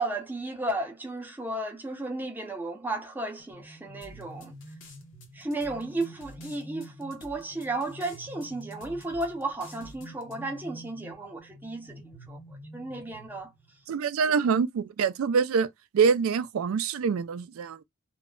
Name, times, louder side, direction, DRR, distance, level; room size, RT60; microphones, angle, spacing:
voice 1, 0.0-4.5 5.3-12.4 12.7-13.5, right 2 dB, 10° right, 0.4 m, -34 dB
sound 1, 3.4-13.9, right 1 dB, 80° left, 1.1 m, -48 dB
sound 2, 4.0-10.4, left 1 dB, 65° left, 0.8 m, -51 dB
voice 2, 13.9-15.7 15.9-17.8, right 6 dB, 90° right, 0.3 m, -25 dB
2.2 x 2.0 x 3.6 m
head